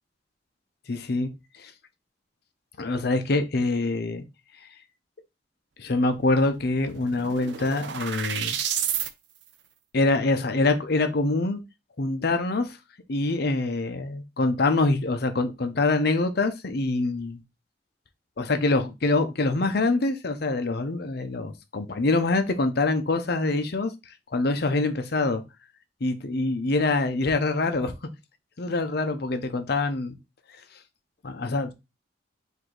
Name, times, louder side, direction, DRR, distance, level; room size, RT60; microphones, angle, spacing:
voice 1, 0.9-1.3 1.6-1.7 2.8-4.2 5.8-8.6 9.9-11.6 12.0-12.8 13.1-17.4 18.4-23.9 24.3-25.4 26.0-27.9 28.6-30.2 31.2-31.7, left 2 dB, 60° left, 0.7 m, -25 dB
sound 1, 6.2-6.3 6.6-9.1, right 9 dB, 75° right, 0.6 m, -30 dB
4.8 x 2.7 x 3.8 m
head